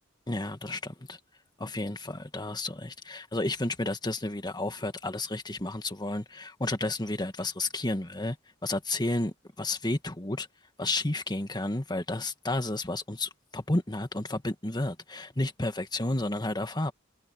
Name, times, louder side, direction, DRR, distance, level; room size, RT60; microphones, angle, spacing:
voice 1, 0.3-1.2 1.6-8.4 8.6-10.5 10.8-16.9, left 2 dB, 20° left, 1.7 m, -31 dB
head